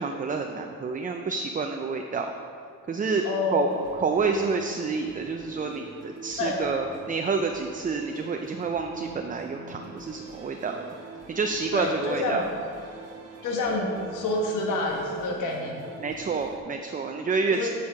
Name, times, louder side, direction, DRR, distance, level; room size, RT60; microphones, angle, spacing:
voice 1, 0.0-2.3 2.9-3.3 3.5-3.7 4.0-10.8 11.3-12.4 16.0-17.7, right 4 dB, 25° right, 4 dB, 0.5 m, -28 dB
voice 2, 3.2-3.8 6.4-6.6 11.7-12.4 13.4-15.8 17.5-17.7, left 2 dB, 85° left, 0 dB, 1.4 m, -28 dB
sound 1, 3.7-16.6, right 2 dB, 55° right, 1.3 m, -45 dB
8.8 x 5.5 x 4.7 m, 2.3 s
cardioid pair, 90°, 30 cm